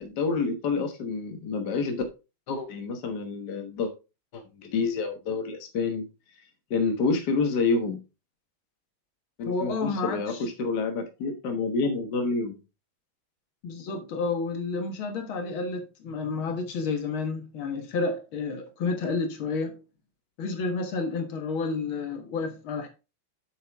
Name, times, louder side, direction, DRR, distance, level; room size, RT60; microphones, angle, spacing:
voice 1, 0.0-2.0 2.5-3.9 4.3-6.1 6.7-8.0 9.4-12.6, left 4 dB, 55° left, 1.8 m, -28 dB
voice 2, 9.5-10.4 13.6-19.8 20.4-22.9, left 4 dB, 75° left, 2.2 m, -30 dB
8.0 x 6.8 x 3.5 m
omnidirectional pair, 2.3 m